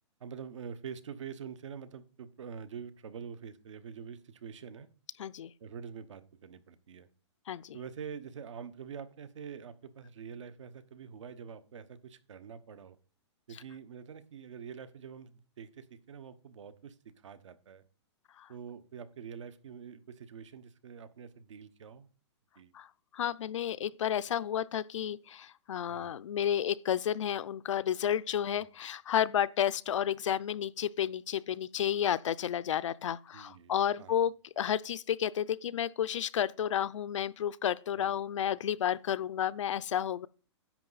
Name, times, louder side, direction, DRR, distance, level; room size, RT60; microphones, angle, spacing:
voice 1, 0.2-4.9 5.6-7.1 7.7-13.0 13.5-17.8 18.5-22.1 22.6-22.7 25.9-26.2 28.6-28.7 33.3-34.2 38.0-38.1, right 7 dB, 80° right, 1.1 m, -46 dB
voice 2, 5.2-5.5 7.5-7.8 18.4-18.5 22.7-22.9 23.1-40.3, left 10 dB, 85° left, 0.5 m, -31 dB
10.5 x 7.5 x 4.0 m
hypercardioid pair, 175°, 15 cm